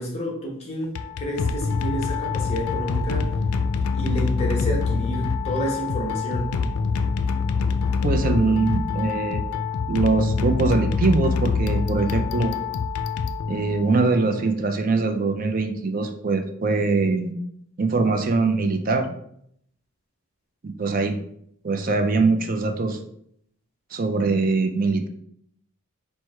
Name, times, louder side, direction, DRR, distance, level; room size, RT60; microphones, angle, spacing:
voice 1, 0.0-3.3 4.0-6.5, equal, 30° left, -2 dB, 0.9 m, -29 dB
sound 1, 0.8-14.0, left 5 dB, 85° left, 0.4 m, -25 dB
voice 2, 8.0-9.4 9.9-12.5 13.5-17.3 17.8-19.1 20.6-21.2 21.6-23.0 23.9-25.1, right 3 dB, 40° right, 6 dB, 0.4 m, -22 dB
4.6 x 2.2 x 4.4 m, 0.69 s
head